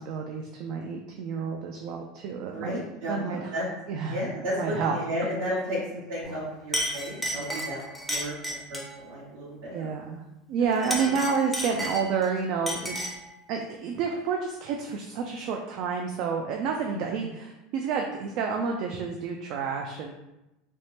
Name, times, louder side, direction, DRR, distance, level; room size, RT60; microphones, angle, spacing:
voice 1, 0.0-2.8 3.1-4.2 4.5-5.0 9.7-10.2 10.5-13.0 13.5-20.1, right 6 dB, 55° right, 2 dB, 0.3 m, -29 dB
voice 2, 2.5-3.6 4.1-9.9 10.8-11.2 16.9-17.2, equal, 85° right, -10 dB, 1.2 m, -33 dB
Chink clink, 6.2-6.4 6.7-9.0 10.7-12.3 12.7-13.3, equal, 5° left, 0.5 m, -32 dB
3.3 x 2.1 x 2.7 m, 0.94 s
supercardioid pair, 135°, 0 cm